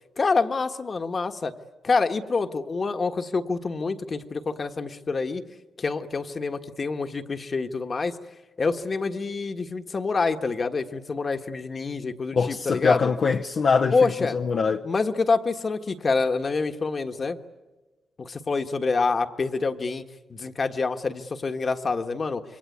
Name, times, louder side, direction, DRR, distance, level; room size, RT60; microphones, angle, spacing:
voice 1, 0.2-1.5 1.8-5.4 5.8-8.2 8.6-13.1 13.9-14.4 14.8-17.4 18.2-20.0 20.3-22.4, left 4 dB, 40° left, 1.5 m, -26 dB
voice 2, 12.3-14.8, left 5 dB, 55° left, 0.8 m, -23 dB
27.0 x 23.0 x 9.5 m
cardioid pair, 105°, 0 cm